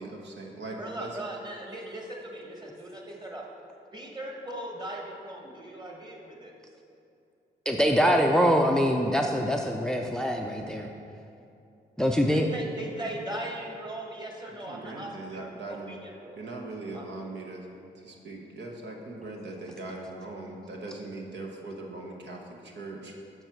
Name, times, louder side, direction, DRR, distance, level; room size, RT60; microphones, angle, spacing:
voice 1, 0.0-1.2 7.9-8.1 14.7-15.9 16.4-17.7 18.0-23.1, right 2 dB, 65° right, 0 dB, 1.0 m, -40 dB
voice 2, 0.8-3.4 3.9-6.5 12.1-16.4 16.9-17.1, right 1 dB, 20° right, 0 dB, 1.5 m, -39 dB
voice 3, 7.7-10.9 12.0-12.5, equal, 5° left, 3 dB, 0.5 m, -24 dB
7.8 x 4.7 x 4.5 m, 2.6 s
supercardioid pair, 50°, 20 cm